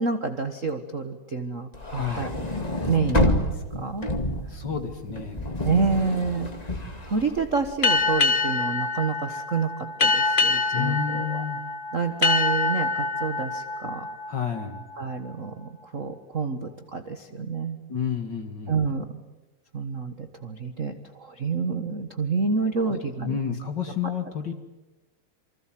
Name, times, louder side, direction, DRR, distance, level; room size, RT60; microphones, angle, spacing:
voice 1, 0.0-2.5 2.9-4.1 5.6-6.5 7.0-11.4 11.9-14.1 15.0-17.8 18.7-19.2 19.7-23.4, right 4 dB, 55° right, 7 dB, 0.8 m, -28 dB
sound 1, 1.7-8.1, left 1 dB, 15° left, 1.7 m, -28 dB
voice 2, 1.9-2.3 4.5-5.4 10.7-11.6 14.3-14.8 17.9-18.8 22.8-23.0 23.2-24.5, left 7 dB, 40° left, 7 dB, 2.1 m, -30 dB
sound 2, 7.8-15.1, left 3 dB, 85° left, 0.4 m, -25 dB
28.0 x 25.0 x 7.7 m, 1.1 s
omnidirectional pair, 3.8 m